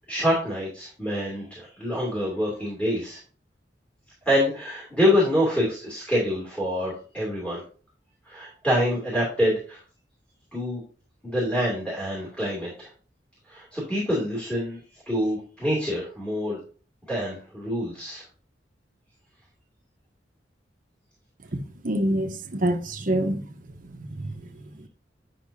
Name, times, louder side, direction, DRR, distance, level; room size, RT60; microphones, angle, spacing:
voice 1, 0.1-3.2 4.3-7.6 8.3-9.8 10.5-10.8 11.2-12.9 13.5-14.8 15.1-16.6 17.1-18.2, equal, 5° left, 2.7 m, -26 dB
voice 2, 21.8-23.4 23.8-24.9, right 1 dB, 50° right, 0.9 m, -27 dB
10.0 x 5.8 x 2.7 m
head